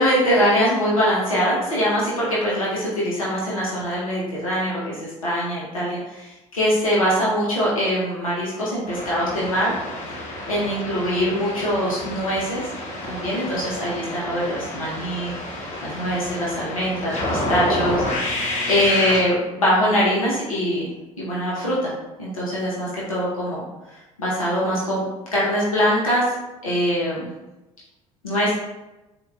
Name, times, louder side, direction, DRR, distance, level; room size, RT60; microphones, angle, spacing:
voice 1, 0.0-9.7 10.5-12.7 13.0-15.4 15.8-18.4 18.7-20.9 21.2-21.9 22.2-23.6 24.2-25.0 25.3-26.2 26.6-27.3 28.2-28.5, equal, 85° left, -6 dB, 1.1 m, -23 dB
sound 1, 8.9-19.2, left 1 dB, 40° left, 1.2 m, -29 dB
4.2 x 3.6 x 2.4 m, 1.0 s
figure-of-eight pair, 60°, 17 cm